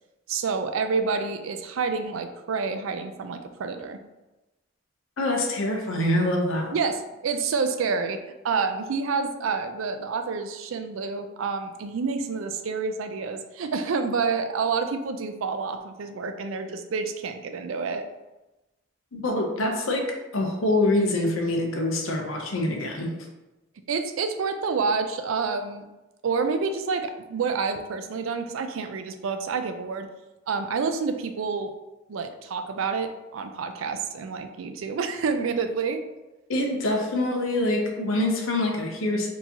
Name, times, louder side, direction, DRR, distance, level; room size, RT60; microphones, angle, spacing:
voice 1, 0.3-4.0 6.7-18.0 23.9-25.8 26.2-30.1 30.5-31.7 32.1-36.0, right 5 dB, 85° right, 7 dB, 0.4 m, -28 dB
voice 2, 5.2-6.7 19.1-23.1 36.5-39.3, left 1 dB, 85° left, 1 dB, 0.7 m, -25 dB
4.5 x 2.8 x 2.8 m, 1.0 s
head